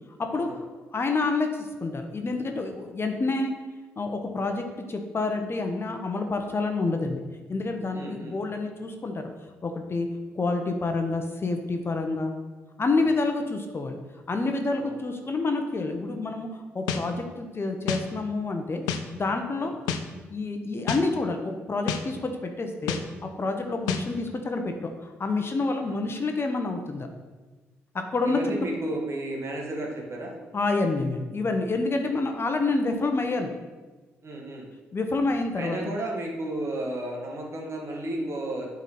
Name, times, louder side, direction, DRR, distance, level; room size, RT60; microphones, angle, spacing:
voice 1, 0.2-0.5 0.9-3.5 4.0-7.2 7.5-9.3 9.6-10.1 10.3-12.3 12.8-14.0 14.3-18.8 19.1-19.7 20.3-27.1 27.9-28.4 30.5-33.5 34.9-35.8, left 3 dB, 40° left, 4 dB, 1.0 m, -28 dB
voice 2, 7.9-8.4 13.0-13.1 14.8-14.9 19.5-19.7 25.8-26.0 28.2-30.4 32.0-32.2 34.2-34.7 35.6-38.7, right 1 dB, 45° right, -1 dB, 1.8 m, -33 dB
sound 1, 16.9-17.0 17.9-18.0 18.9-19.0 19.9-20.0 20.9-21.0 21.9-22.0 22.9-23.0 23.9-24.0, left 8 dB, 80° left, 0.5 m, -27 dB
8.1 x 4.1 x 4.3 m, 1.3 s
hypercardioid pair, 45°, 7 cm